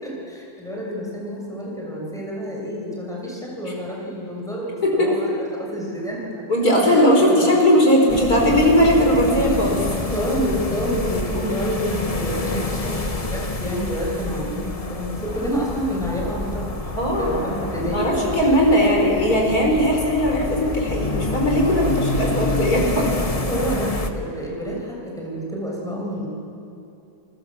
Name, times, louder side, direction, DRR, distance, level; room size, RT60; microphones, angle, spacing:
voice 1, 0.0-6.5 6.7-7.7 10.1-16.9 17.2-19.1 23.5-26.3, equal, ahead, -4 dB, 6.4 m, -28 dB
voice 2, 6.5-9.8 17.0-17.4 17.9-23.1, equal, 65° left, 0 dB, 5.5 m, -18 dB
sound 1, 8.1-24.1, left 2 dB, 25° left, 1.2 m, -28 dB
28.5 x 20.0 x 7.5 m, 2.7 s
omnidirectional pair, 1.7 m